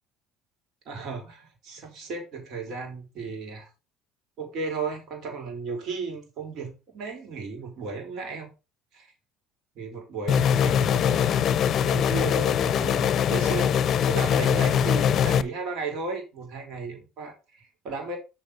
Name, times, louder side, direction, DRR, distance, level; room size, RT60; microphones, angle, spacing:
voice 1, 0.9-3.7 4.4-8.5 8.9-9.1 9.7-11.2 11.8-13.8 14.1-18.2, right 4 dB, 60° right, 4.9 m, -35 dB
sound 1, 10.3-15.4, left 8 dB, 50° left, 0.6 m, -22 dB
7.5 x 5.8 x 5.2 m
hypercardioid pair, 70°, 0 cm